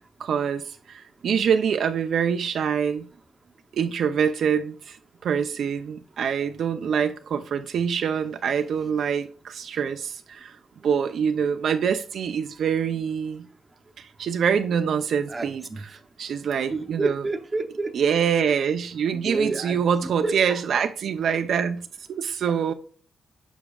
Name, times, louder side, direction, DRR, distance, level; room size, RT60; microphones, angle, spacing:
voice 1, 0.2-3.1 3.7-5.0 5.2-10.6 10.8-13.4 14.0-15.6 16.2-17.2 17.9-21.8 22.1-22.7, right 7 dB, 65° right, 0.5 m, -25 dB
voice 2, 15.3-16.0 16.7-17.9 19.1-20.9, right 3 dB, 25° right, 0.8 m, -30 dB
6.9 x 5.9 x 2.3 m
cardioid pair, 105°, 0 cm